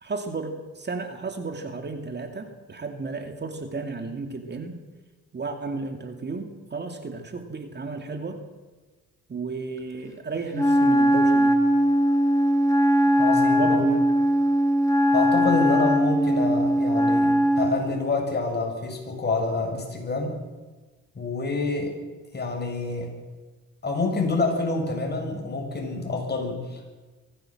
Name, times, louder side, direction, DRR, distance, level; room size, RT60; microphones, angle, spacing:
voice 1, 0.0-4.8 5.3-8.4 9.3-11.6 13.5-14.0 15.6-15.8, right 3 dB, 35° right, 6 dB, 2.5 m, -33 dB
Wind instrument woodwind instrument, 10.5-17.8, equal, 10° left, 2.4 m, -20 dB
voice 2, 13.2-13.8 15.1-20.3 21.1-22.0 22.3-23.1 23.8-26.9, left 3 dB, 35° left, 2 dB, 7.2 m, -27 dB
23.5 x 16.5 x 7.8 m, 1.3 s
cardioid pair, 90°, 30 cm